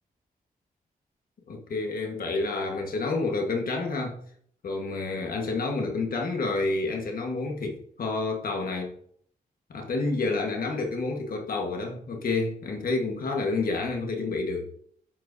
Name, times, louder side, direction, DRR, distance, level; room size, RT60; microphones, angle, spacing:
voice 1, 1.5-4.2 4.6-8.9 9.7-14.7, left 3 dB, 75° left, 1.5 m, -29 dB
11.0 x 7.7 x 2.7 m
wide cardioid pair, 115°, 15 cm